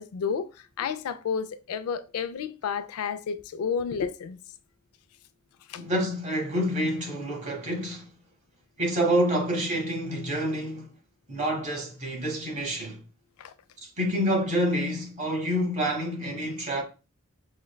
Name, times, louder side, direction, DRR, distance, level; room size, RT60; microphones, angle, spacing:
voice 1, 0.0-4.4 5.7-5.8 13.4-13.5, left 6 dB, 90° left, 0.3 m, -31 dB
voice 2, 5.8-8.0 8.8-10.9 11.3-13.0 13.8-16.8, equal, 35° right, 1.0 m, -27 dB
5.0 x 2.1 x 2.2 m
head